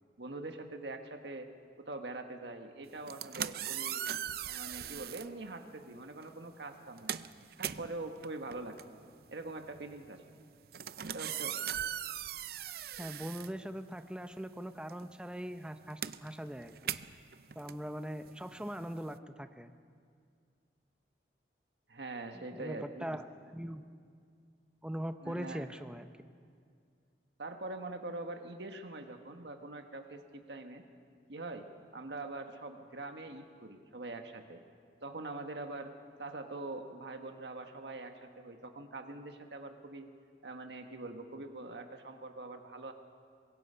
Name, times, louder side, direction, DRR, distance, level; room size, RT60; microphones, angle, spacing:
voice 1, 0.2-1.5 1.8-4.0 4.5-7.2 7.6-10.2 11.0-11.6 21.9-23.2 25.2-25.7 27.4-30.8 31.3-31.7 31.9-34.6 35.0-35.9 36.2-40.1 40.4-42.9, right 2 dB, 75° right, 5 dB, 1.4 m, -43 dB
sound 1, 2.9-5.3 6.2-6.4 6.7-14.2 14.5-19.2, right 10 dB, 55° right, 0.5 m, -40 dB
voice 2, 13.0-17.0 17.6-19.7 22.3-23.3 23.5-23.9 24.8-26.1, equal, 5° right, 8 dB, 0.6 m, -41 dB
24.5 x 21.5 x 5.6 m, 2.2 s
head